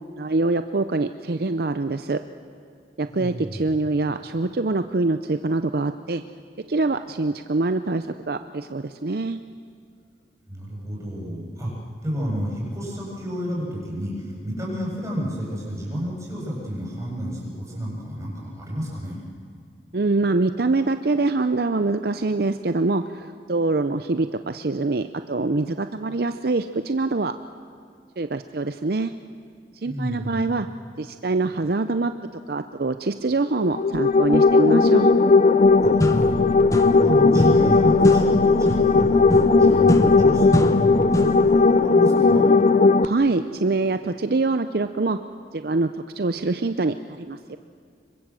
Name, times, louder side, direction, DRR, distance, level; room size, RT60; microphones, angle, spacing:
voice 1, 0.2-2.2 3.0-6.2 6.7-9.4 19.9-27.3 28.2-29.1 29.8-30.7 31.0-35.1 43.0-45.2 45.5-47.6, right 3 dB, 60° right, 10 dB, 0.6 m, -24 dB
voice 2, 3.1-3.7 10.5-11.7 12.0-19.2 29.8-30.5 35.8-36.4 36.7-42.4, equal, 15° right, -4 dB, 7.8 m, -31 dB
sound 1, 33.6-43.0, left 3 dB, 40° left, 0.5 m, -17 dB
sound 2, 35.6-35.7 36.0-37.1 37.3-41.5, left 1 dB, 20° left, 1.3 m, -25 dB
25.5 x 23.5 x 7.7 m, 2.4 s
head